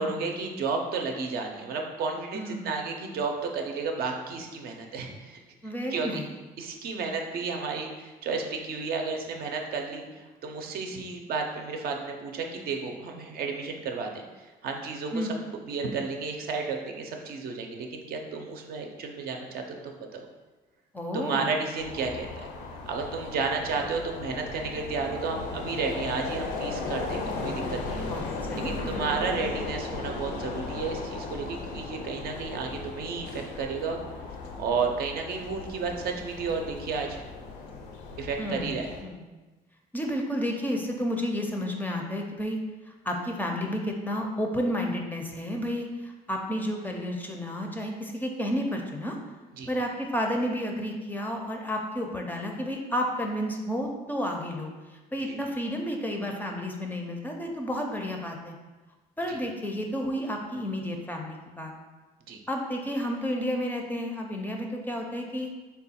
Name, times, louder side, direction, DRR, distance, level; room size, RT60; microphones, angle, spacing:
voice 1, 0.0-5.4 5.9-6.2 6.6-14.2 14.6-15.3 15.7-20.3 21.1-22.5 22.9-28.1 28.5-34.0 34.6-37.2 38.2-38.9 49.6-49.7 55.3-55.4 59.3-59.4 62.3-62.4, right 4 dB, 65° right, 2 dB, 0.5 m, -32 dB
voice 2, 2.3-2.8 5.6-6.3 15.1-15.3 20.9-21.5 28.0-29.2 38.4-39.3 39.9-42.6 43.0-49.1 49.7-54.7 55.1-58.5 59.2-61.7 62.5-65.5, equal, 10° left, 1 dB, 0.4 m, -31 dB
sound 1, 21.8-39.0, left 3 dB, 85° left, 0.5 m, -36 dB
3.6 x 2.3 x 4.1 m, 1.2 s
cardioid pair, 110°, 17 cm